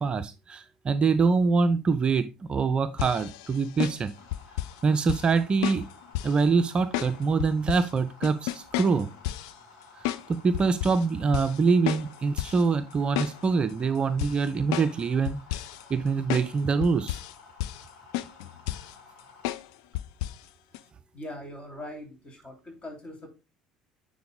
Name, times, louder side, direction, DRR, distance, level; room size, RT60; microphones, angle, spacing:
voice 1, 0.0-4.1 4.8-5.8 6.2-9.1 10.3-15.4 15.9-17.2, right 4 dB, 30° right, 11 dB, 0.5 m, -24 dB
sound 1, 3.0-4.8 5.1-5.3 5.6-6.4 6.9-7.9 8.2-9.5 10.0-10.3 10.5-11.1 11.3-11.6 11.9-12.6 12.9-13.7 14.2-15.0 15.3-15.8 16.3-16.5 16.8-17.4 17.6-17.9 18.1-19.0 19.4-19.7 19.9-20.4 20.7-20.8, left 15 dB, 60° left, 0.4 m, -32 dB
sound 2, 4.1-19.4, left 4 dB, 75° left, 2.2 m, -53 dB
voice 2, 21.1-23.3, left 1 dB, 30° left, 3 dB, 2.9 m, -41 dB
9.5 x 3.9 x 3.7 m, 0.28 s
figure-of-eight pair, 60°, 3 cm